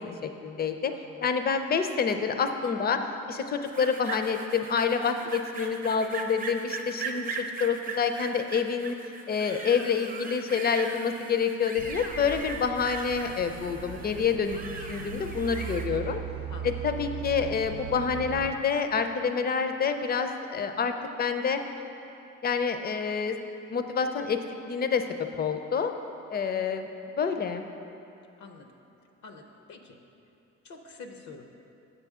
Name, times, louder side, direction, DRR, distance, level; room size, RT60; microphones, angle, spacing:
voice 1, 0.0-0.9 1.2-3.0 3.3-9.0 9.3-14.6 14.9-16.2 16.6-21.6 22.4-23.4 23.7-25.9 26.3-26.9 27.2-27.6, left 6 dB, 30° left, 7 dB, 0.5 m, -28 dB
voice 2, 0.9-1.3 16.5-16.8 28.4-28.7 29.2-30.0 30.6-31.5, left 3 dB, 70° left, 4 dB, 0.6 m, -47 dB
sound 1, 3.7-15.9, right 4 dB, 30° right, 0.6 m, -39 dB
sound 2, 11.8-18.5, right 7 dB, 75° right, 0.5 m, -39 dB
6.8 x 6.7 x 3.6 m, 2.8 s
cardioid pair, 90°, 30 cm